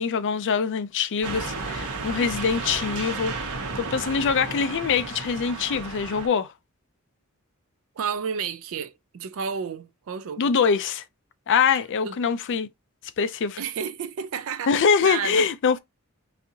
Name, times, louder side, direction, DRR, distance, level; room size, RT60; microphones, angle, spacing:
voice 1, 0.0-6.5 10.4-11.0 11.5-12.7 13.2-13.6 14.7-15.8, left 6 dB, 55° left, 0.4 m, -24 dB
sound 1, 1.2-6.3, right 3 dB, 90° right, 1.0 m, -33 dB
voice 2, 8.0-10.4 12.0-12.2 13.6-14.7 15.0-15.5, right 6 dB, 65° right, 0.4 m, -31 dB
4.0 x 2.7 x 2.7 m
head